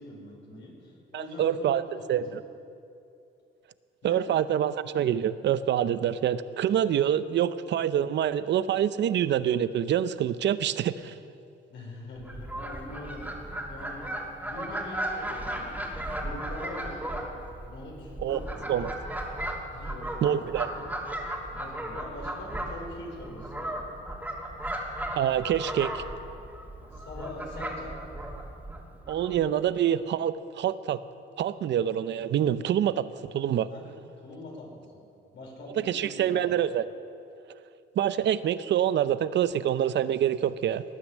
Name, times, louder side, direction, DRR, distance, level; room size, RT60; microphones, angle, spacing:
voice 1, 0.0-2.2 4.0-4.2 11.7-14.1 14.4-15.8 16.1-17.0 17.6-18.8 19.7-20.8 21.5-23.7 26.9-27.9 33.7-33.8 34.2-35.0 35.3-36.6, left 2 dB, 70° left, -1 dB, 4.9 m, -43 dB
voice 2, 1.1-2.4 4.0-11.1 18.2-18.4 18.7-18.9 20.2-20.7 25.2-26.0 29.1-31.0 31.4-33.1 33.3-33.7 35.8-36.8 38.0-40.8, right 10 dB, 65° right, 14 dB, 0.6 m, -26 dB
Fowl, 12.2-29.5, right 1 dB, 10° right, 2.8 m, -36 dB
19.0 x 9.8 x 7.3 m, 2.6 s
cardioid pair, 90°, 20 cm